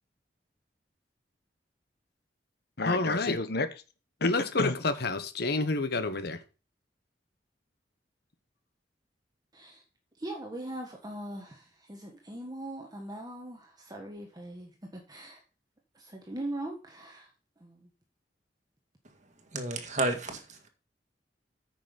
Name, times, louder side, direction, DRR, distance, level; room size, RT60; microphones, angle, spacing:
voice 1, 2.8-3.7 4.2-6.4, left 3 dB, 65° left, 1.3 m, -28 dB
voice 2, 10.2-15.4 15.9-17.3 17.6-17.9, right 1 dB, 25° right, 1.5 m, -41 dB
voice 3, 19.5-20.7, right 2 dB, 45° right, 2.0 m, -31 dB
9.2 x 6.1 x 5.4 m
head